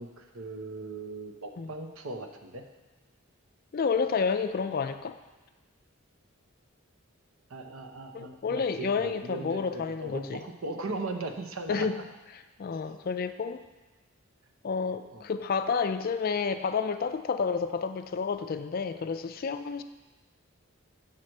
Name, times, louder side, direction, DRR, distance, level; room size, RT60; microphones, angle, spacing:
voice 1, 0.0-2.7 7.5-11.9 15.1-15.3, right 2 dB, 80° right, 5 dB, 0.8 m, -38 dB
voice 2, 3.7-5.2 8.1-10.4 11.7-12.0 12.6-13.6 14.6-19.8, left 5 dB, 45° left, 10 dB, 0.4 m, -30 dB
7.4 x 4.6 x 6.4 m, 1.1 s
head